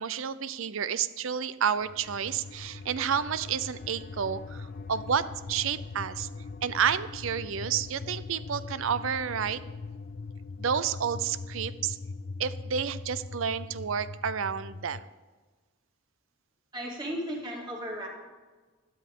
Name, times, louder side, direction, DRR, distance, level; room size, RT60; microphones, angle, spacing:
voice 1, 0.0-6.3 6.6-9.6 10.6-12.0 12.4-15.0, right 7 dB, 65° right, 15 dB, 0.5 m, -30 dB
sound 1, 1.8-15.1, left 3 dB, 40° left, 0.3 m, -41 dB
voice 2, 16.7-18.1, equal, 20° right, -2 dB, 2.3 m, -35 dB
13.0 x 12.5 x 3.7 m, 1.3 s
head